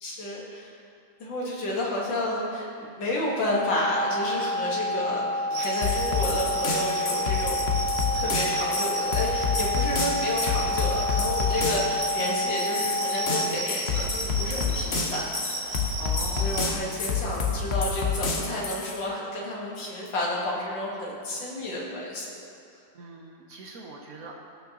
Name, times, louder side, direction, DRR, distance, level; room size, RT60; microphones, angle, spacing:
voice 1, 0.0-0.8 1.2-7.7 8.1-15.8 16.3-22.4, left 1 dB, 75° left, -4 dB, 2.2 m, -31 dB
sound 1, 3.4-13.4, left 1 dB, 20° left, 2.1 m, -29 dB
sound 2, 5.5-16.8, right 1 dB, 25° right, 0.9 m, -34 dB
sound 3, 5.8-19.0, left 5 dB, 45° left, 0.9 m, -28 dB
voice 2, 16.0-16.7 22.9-24.3, right 2 dB, 60° right, 0 dB, 1.0 m, -42 dB
17.0 x 6.1 x 2.9 m, 2.4 s
omnidirectional pair, 2.0 m